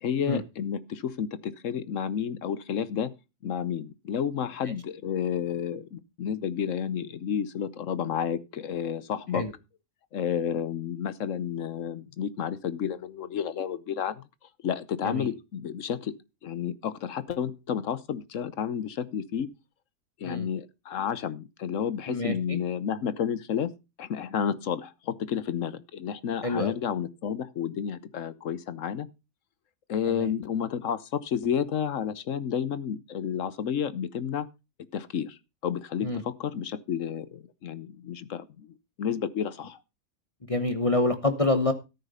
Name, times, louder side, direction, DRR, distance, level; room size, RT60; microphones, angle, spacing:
voice 1, 0.0-3.1 3.4-9.4 10.1-14.2 14.6-16.1 16.4-19.5 20.2-23.7 24.0-29.1 29.9-34.5 34.9-38.7 39.0-39.8, left 8 dB, 65° left, 1.1 m, -31 dB
voice 2, 22.1-22.6 26.4-26.7 30.1-30.3 36.0-36.2 40.5-41.7, left 2 dB, 25° left, 1.0 m, -27 dB
13.5 x 6.6 x 5.5 m
omnidirectional pair, 1.5 m